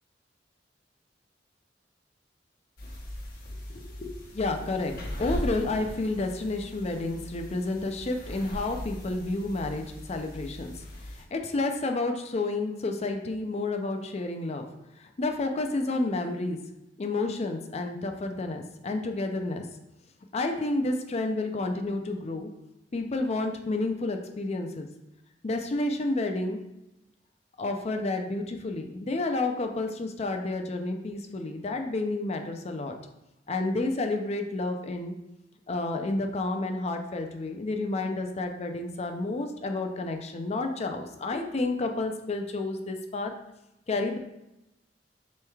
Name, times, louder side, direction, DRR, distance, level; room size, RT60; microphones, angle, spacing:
sound 1, 2.8-11.2, left 1 dB, 60° left, 1.0 m, -39 dB
voice 1, 3.7-10.7 11.3-14.7 15.0-16.6 17.0-19.6 20.3-22.5 22.9-24.9 25.4-26.6 27.6-32.9 33.5-35.1 35.7-43.3 43.9-44.2, left 2 dB, 35° left, 5 dB, 0.5 m, -30 dB
6.5 x 3.1 x 2.3 m, 0.91 s
head